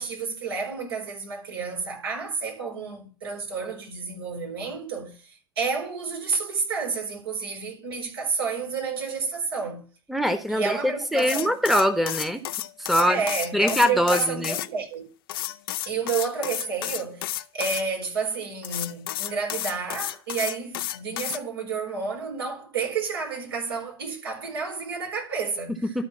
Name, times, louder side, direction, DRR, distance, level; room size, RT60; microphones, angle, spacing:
voice 1, 0.0-9.8 10.5-11.5 13.0-15.0 15.8-26.1, right 5 dB, 75° right, 4.3 m, -30 dB
voice 2, 10.1-12.4 12.8-13.2 13.5-14.5 25.9-26.1, equal, ahead, 1.2 m, -23 dB
sound 1, 11.2-14.7 15.3-17.8 18.6-21.4, left 14 dB, 65° left, 0.6 m, -32 dB
12.5 x 4.6 x 7.1 m
figure-of-eight pair, 75°, 13 cm